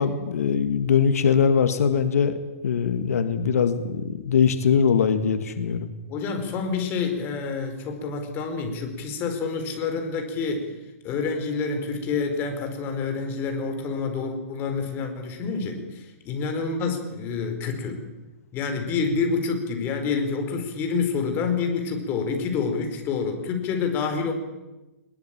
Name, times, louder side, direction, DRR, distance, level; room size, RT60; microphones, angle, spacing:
voice 1, 0.0-2.3 2.6-5.9, left 6 dB, 85° left, 9 dB, 1.9 m, -21 dB
voice 2, 6.1-10.7 11.0-18.0 18.5-24.3, left 5 dB, 25° left, 5 dB, 4.3 m, -28 dB
21.0 x 20.5 x 8.9 m, 1.1 s
hypercardioid pair, 155°, 8 cm